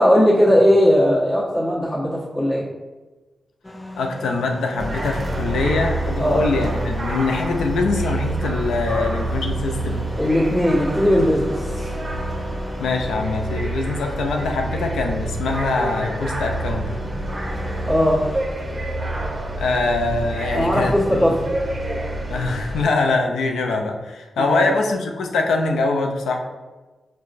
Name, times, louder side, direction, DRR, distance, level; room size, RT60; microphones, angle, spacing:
voice 1, 0.0-2.6 6.2-6.4 10.1-11.9 17.9-18.2 20.5-21.4 24.4-24.7, equal, 25° left, -11 dB, 1.2 m, -18 dB
sound 1, 3.6-18.4, left 1 dB, 10° left, 0.3 m, -37 dB
voice 2, 4.0-10.1 12.8-17.1 19.6-21.4 22.3-26.4, left 3 dB, 90° left, 2 dB, 0.4 m, -23 dB
sound 2, 4.8-22.9, right 1 dB, 40° right, 0.6 m, -28 dB
4.7 x 2.2 x 2.5 m, 1.2 s
cardioid pair, 55°, 0 cm